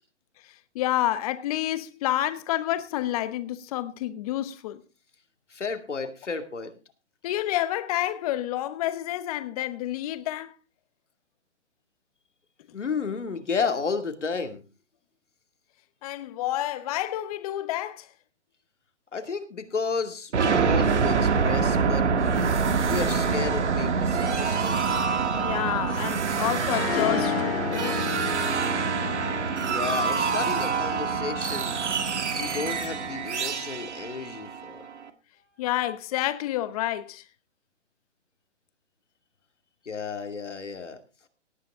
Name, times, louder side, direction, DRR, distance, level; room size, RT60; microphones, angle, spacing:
voice 1, 0.7-4.8 7.2-10.5 16.0-18.1 25.3-28.0 35.6-37.2, left 14 dB, 30° left, 1.1 m, -29 dB
voice 2, 5.5-6.7 12.7-14.6 19.1-22.1 22.8-24.8 29.7-31.8 32.3-34.9 39.9-41.0, left 5 dB, 80° left, 2.5 m, -32 dB
sound 1, 20.3-35.0, right 5 dB, 70° right, 1.9 m, -26 dB
Harp, 26.6-31.7, left 10 dB, 55° left, 1.1 m, -33 dB
18.0 x 9.7 x 3.7 m
hypercardioid pair, 140°, 35 cm